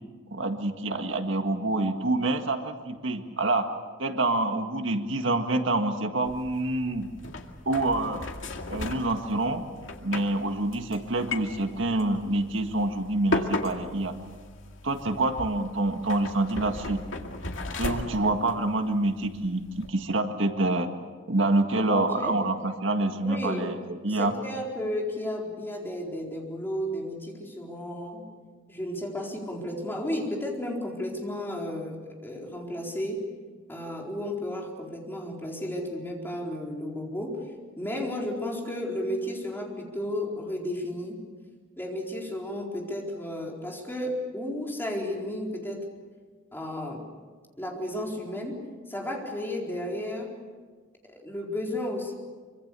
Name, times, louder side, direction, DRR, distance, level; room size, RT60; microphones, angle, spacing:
voice 1, 0.3-3.7 4.0-7.1 7.7-8.2 8.7-9.6 10.0-14.1 14.8-17.0 17.8-20.9 21.3-24.3, right 2 dB, 75° right, 6 dB, 1.8 m, -27 dB
sound 1, 6.3-19.9, left 2 dB, 80° left, 2.3 m, -37 dB
voice 2, 21.7-22.4 23.2-23.7 24.1-28.3 28.7-33.2 33.7-37.5 37.8-41.2 41.8-45.9 46.5-47.1 47.6-50.3 51.0-52.1, left 1 dB, 10° left, -1 dB, 4.3 m, -33 dB
25.0 x 24.5 x 6.9 m, 1.4 s
head